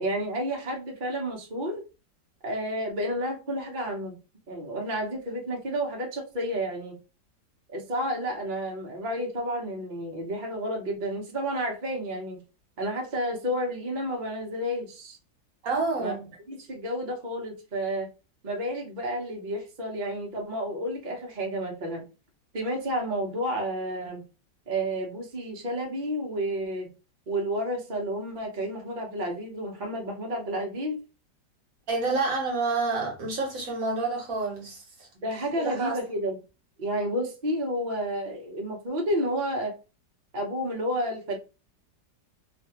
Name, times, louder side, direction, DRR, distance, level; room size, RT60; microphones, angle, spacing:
voice 1, 0.0-1.8 2.4-4.2 4.5-7.0 7.7-12.4 12.8-15.2 16.0-16.1 16.5-18.1 18.4-22.0 22.5-24.2 24.7-26.9 27.3-31.0 35.2-36.4 36.8-39.7 40.3-41.4, equal, 40° right, 0.7 m, -31 dB
voice 2, 15.6-16.3 31.9-35.1 35.6-36.0, right 3 dB, 60° right, 1.2 m, -28 dB
3.0 x 2.6 x 2.8 m
omnidirectional pair, 1.9 m